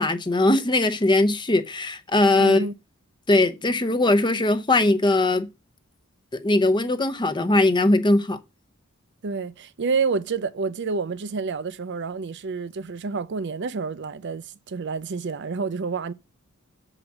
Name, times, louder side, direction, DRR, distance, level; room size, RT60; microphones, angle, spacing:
voice 1, 0.0-2.7 3.3-5.5 6.3-8.4, left 2 dB, 20° left, 0.7 m, -20 dB
voice 2, 2.4-2.7 9.2-16.1, right 4 dB, 55° right, 0.5 m, -28 dB
7.4 x 4.9 x 7.2 m
head